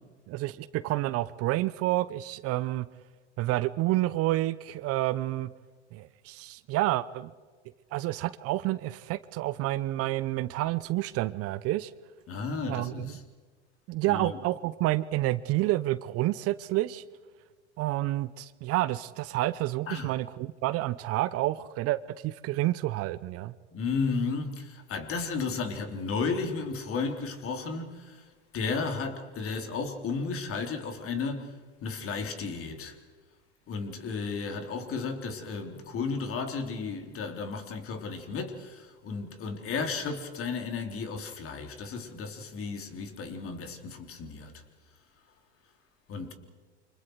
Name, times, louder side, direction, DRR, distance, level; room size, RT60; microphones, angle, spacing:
voice 1, 0.3-2.9 3.4-5.5 5.9-7.3 7.9-11.9 12.7-13.2 13.9-17.0 17.8-23.5, right 16 dB, 45° right, 0.8 m, -29 dB
voice 2, 12.3-13.2 14.1-14.4 19.9-20.1 23.7-28.2 28.5-31.5 31.8-33.0 33.7-44.5 46.1-46.3, left 4 dB, 40° left, 3.5 m, -33 dB
29.0 x 26.0 x 4.7 m
hypercardioid pair, 85°, 34 cm